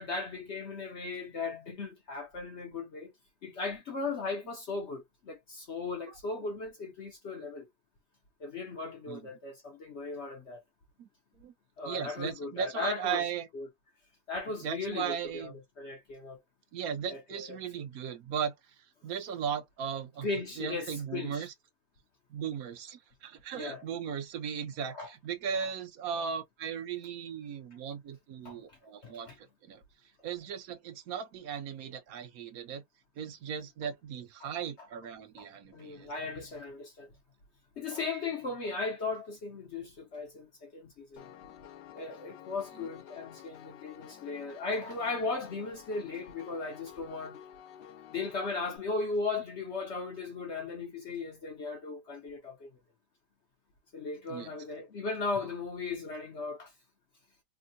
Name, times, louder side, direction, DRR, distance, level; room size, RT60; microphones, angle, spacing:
voice 1, 0.0-3.1 3.4-7.7 8.4-10.6 11.8-13.2 13.5-13.7 14.3-16.4 17.1-17.6 20.2-21.5 23.5-23.8 24.9-25.1 25.6-25.7 28.4-29.4 34.4-34.5 35.4-35.5 35.7-37.1 37.8-41.2 41.9-47.4 48.1-52.8 53.9-56.7, left 3 dB, 55° left, 0.8 m, -37 dB
voice 2, 11.8-13.5 14.6-15.6 16.7-20.3 20.6-21.5 22.3-29.8 30.2-32.8 33.2-36.1 42.8-42.9 54.3-54.5, right 7 dB, 60° right, 1.0 m, -37 dB
Piano, 41.2-48.8, left 10 dB, 75° left, 1.2 m, -51 dB
3.4 x 2.1 x 2.6 m
omnidirectional pair, 2.0 m